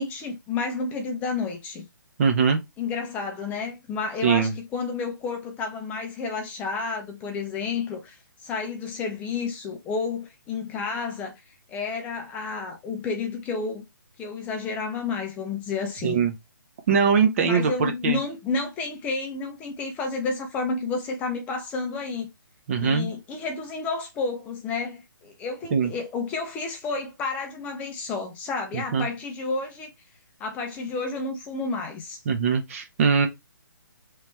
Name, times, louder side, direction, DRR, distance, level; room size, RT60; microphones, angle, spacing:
voice 1, 0.0-1.9 2.8-11.3 11.7-13.8 14.2-16.2 17.4-22.3 22.8-29.9 30.4-32.2, left 4 dB, 15° left, 0.5 m, -31 dB
voice 2, 2.2-2.6 4.2-4.5 16.0-16.3 16.9-18.2 22.7-23.1 25.7-25.9 28.7-29.1 32.3-33.3, right 6 dB, 40° right, 0.7 m, -22 dB
3.3 x 3.0 x 3.2 m
hypercardioid pair, 150°, 11 cm